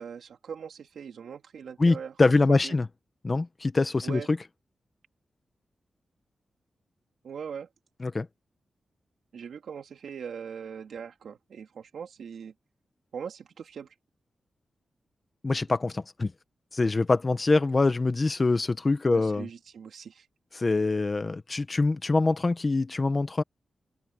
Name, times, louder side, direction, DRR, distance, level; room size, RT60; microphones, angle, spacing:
voice 1, 0.0-2.1 2.5-2.8 4.0-4.3 7.2-7.7 9.3-12.5 13.1-13.9 19.1-20.3, right 7 dB, 90° right, 2.9 m, -40 dB
voice 2, 1.8-2.8 3.2-4.4 8.0-8.3 15.4-16.3 16.7-19.5 20.5-23.4, left 3 dB, 30° left, 1.1 m, -24 dB
wide cardioid pair, 140°, 0 cm